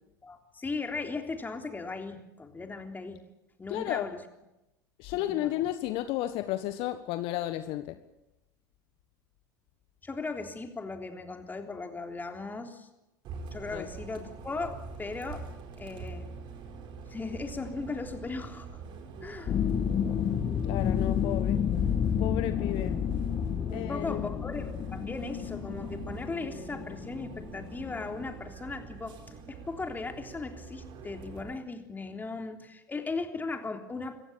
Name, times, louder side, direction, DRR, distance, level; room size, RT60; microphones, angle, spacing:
voice 1, 0.2-3.2 3.6-4.2 5.1-5.5 10.0-12.9 13.5-15.5 15.8-16.3 17.1-18.8 19.2-19.5 23.7-29.2 29.5-34.2, left 3 dB, 15° left, 4 dB, 3.5 m, -37 dB
voice 2, 3.7-4.1 5.0-8.0 13.7-13.9 20.6-21.6 22.2-22.9 23.7-24.4, left 14 dB, 55° left, 10 dB, 1.4 m, -33 dB
Bus, 13.2-31.5, right 4 dB, 50° right, 4.1 m, -45 dB
sound 1, 19.5-28.3, left 8 dB, 40° left, 1.8 m, -30 dB
26.5 x 15.0 x 8.7 m, 0.94 s
hypercardioid pair, 80°, 11 cm